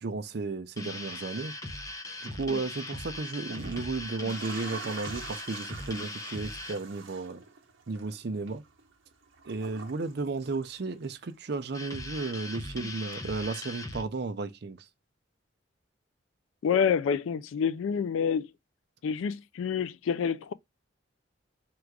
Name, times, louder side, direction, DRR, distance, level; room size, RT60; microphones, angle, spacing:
voice 1, 0.0-1.5 2.2-7.4 7.9-8.6 9.4-14.9, right 3 dB, 55° right, 0.5 m, -34 dB
sound 1, 0.8-6.8 11.7-14.1, left 2 dB, 15° left, 0.6 m, -40 dB
sound 2, 2.2-2.4 3.3-11.3 11.6-12.7 13.1-13.2, right 4 dB, 80° right, 0.9 m, -47 dB
voice 2, 16.6-18.5 19.0-20.5, left 7 dB, 85° left, 0.3 m, -28 dB
3.8 x 2.4 x 4.5 m
head